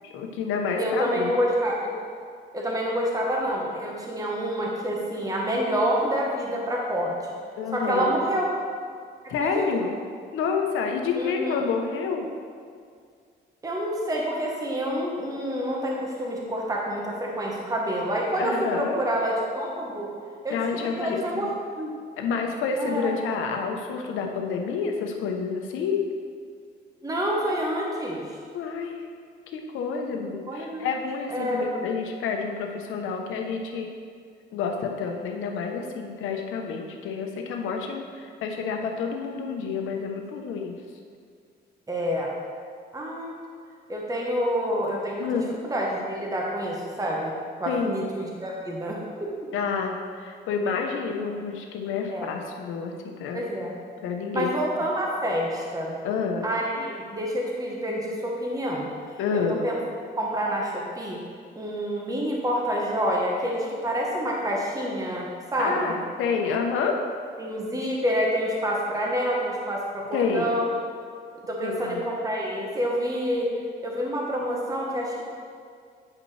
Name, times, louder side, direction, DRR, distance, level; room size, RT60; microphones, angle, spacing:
voice 1, 0.0-1.4 7.6-8.1 9.3-10.0 10.3-12.3 18.4-19.0 20.5-21.5 22.2-26.0 28.5-28.9 29.5-33.9 34.5-40.8 45.2-45.4 47.7-48.0 49.5-53.4 54.0-54.8 56.0-56.5 59.2-59.6 65.6-67.0 70.1-70.5 71.6-72.1, left 5 dB, 90° left, 3 dB, 0.8 m, -29 dB
voice 2, 0.8-1.9 2.5-7.2 7.7-8.5 9.2-9.7 11.1-11.6 13.6-20.1 20.4-21.9 22.8-23.1 27.0-28.2 30.5-30.9 31.3-31.7 41.9-42.3 42.9-43.3 43.9-45.3 45.6-47.3 47.6-49.3 52.1-52.3 53.3-53.8 54.3-56.0 56.4-58.9 59.3-59.7 60.1-61.2 61.5-66.0 67.4-70.6 71.5-73.5 73.8-75.2, equal, 15° right, -2 dB, 1.1 m, -27 dB
9.4 x 5.2 x 3.2 m, 2.2 s
cardioid pair, 90°, 20 cm